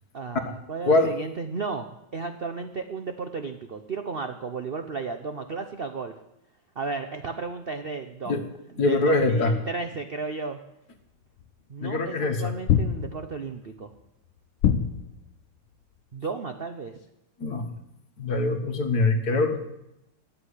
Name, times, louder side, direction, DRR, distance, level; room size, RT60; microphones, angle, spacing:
voice 1, 0.1-6.1 6.8-8.4 8.7-10.6 11.7-13.9 16.1-17.0, right 4 dB, 75° right, 7 dB, 0.5 m, -34 dB
voice 2, 8.8-9.5 11.8-12.5 17.4-17.7 18.2-19.8, left 2 dB, 50° left, 7 dB, 1.8 m, -23 dB
sound 1, 11.4-11.5 12.7-13.5 14.6-15.4, left 9 dB, 80° left, 1.6 m, -24 dB
13.0 x 8.5 x 10.0 m, 0.87 s
omnidirectional pair, 2.2 m